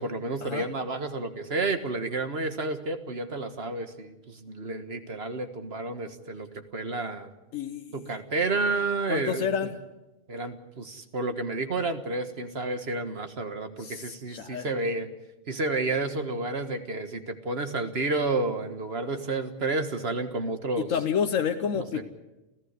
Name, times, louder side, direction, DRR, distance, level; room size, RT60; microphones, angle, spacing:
voice 1, 0.0-7.3 7.9-9.5 10.3-15.1 15.5-20.9 21.8-22.0, right 3 dB, 50° right, 8 dB, 1.7 m, -30 dB
voice 2, 7.5-8.0 9.1-9.8 13.8-14.7 20.8-22.0, left 7 dB, 90° left, 6 dB, 1.3 m, -29 dB
30.0 x 14.5 x 8.1 m, 1.0 s
omnidirectional pair, 1.3 m